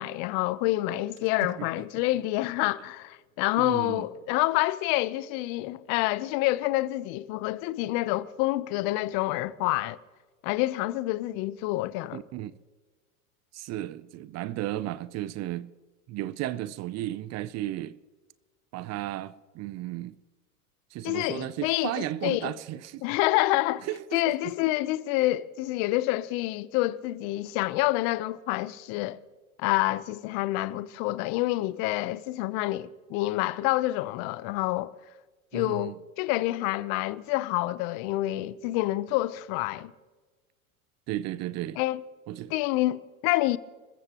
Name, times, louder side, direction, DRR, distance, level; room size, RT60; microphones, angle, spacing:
voice 1, 0.0-10.0 10.4-12.2 21.0-22.5 23.0-23.9 24.1-29.2 29.6-34.9 35.5-39.9 41.8-42.0 42.5-43.6, left 18 dB, 50° left, 0.8 m, -27 dB
voice 2, 3.6-4.1 12.1-12.5 13.5-15.7 16.1-17.9 18.7-20.2 20.9-23.0 23.8-24.5 35.5-36.0 41.1-41.8 42.3-42.5, right 14 dB, 40° right, 0.6 m, -34 dB
30.0 x 14.0 x 3.0 m
hypercardioid pair, 95°, 43 cm